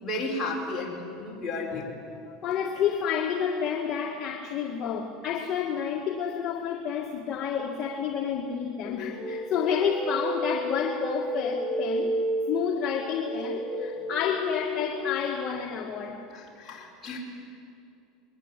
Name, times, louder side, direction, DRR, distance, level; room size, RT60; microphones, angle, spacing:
voice 1, 0.0-1.9 16.3-17.2, left 2 dB, 15° left, -4 dB, 5.0 m, -33 dB
voice 2, 2.3-12.1 12.5-16.3, left 7 dB, 35° left, 0 dB, 2.1 m, -30 dB
sound 1, 8.8-15.0, equal, 10° right, 5.8 m, -32 dB
24.5 x 21.5 x 9.9 m, 2.6 s
supercardioid pair, 145°, 0 cm